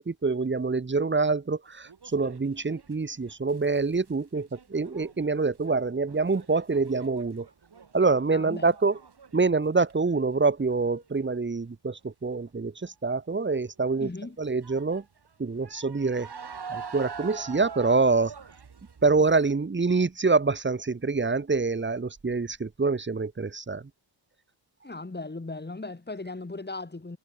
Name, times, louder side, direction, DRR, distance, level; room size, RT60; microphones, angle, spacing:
voice 1, 0.0-7.5 7.9-9.0 9.3-14.1 14.4-15.0 15.4-16.3 16.7-18.3 19.0-23.9, right 4 dB, 25° right, 1.0 m, -26 dB
sound 1, 1.7-4.1 4.4-9.4 9.7-10.2 10.6-11.1 12.8-13.1 13.6-13.7 14.6-19.5, right 6 dB, 55° right, 5.4 m, -44 dB
voice 2, 8.3-8.7 14.0-14.4 24.8-27.2, left 3 dB, 20° left, 5.6 m, -37 dB
wide cardioid pair, 175°, 48 cm